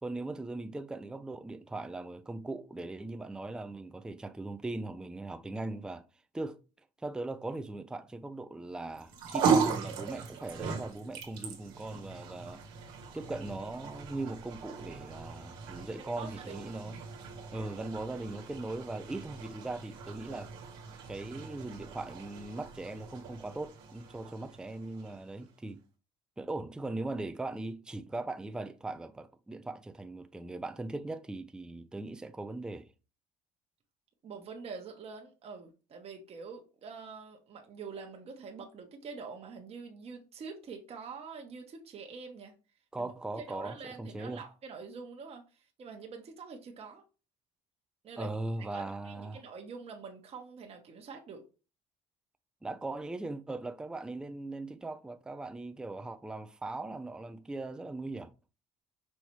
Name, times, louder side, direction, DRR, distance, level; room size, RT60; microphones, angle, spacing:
voice 1, 0.0-6.0 6.3-6.6 7.0-12.6 13.1-17.0 17.5-20.5 21.1-25.8 26.4-32.9 42.9-44.4 48.2-49.4 52.6-58.3, right 2 dB, 5° right, 0.4 m, -39 dB
sound 1, 9.0-25.5, right 6 dB, 85° right, 1.3 m, -37 dB
voice 2, 16.0-16.7 34.2-42.5 43.0-43.1 43.4-47.0 48.0-48.3 48.6-51.4, right 5 dB, 40° right, 1.0 m, -45 dB
5.5 x 3.2 x 3.0 m
supercardioid pair, 95°, 16 cm